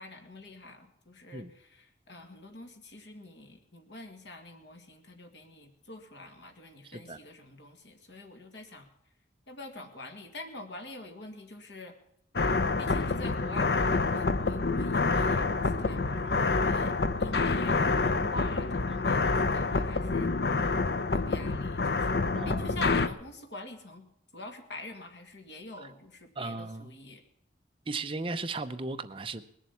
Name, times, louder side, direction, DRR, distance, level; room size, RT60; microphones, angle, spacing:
voice 1, 0.0-8.9 9.5-11.9 12.8-16.9 17.2-20.3 21.1-24.0 24.3-27.2, left 2 dB, 80° left, 4 dB, 2.1 m, -46 dB
voice 2, 6.8-7.2 22.3-22.8 26.4-26.9 27.9-29.5, right 3 dB, 30° right, 9 dB, 0.7 m, -36 dB
sound 1, 12.4-23.1, left 3 dB, 65° left, 0.7 m, -27 dB
20.0 x 7.4 x 8.5 m, 0.72 s
head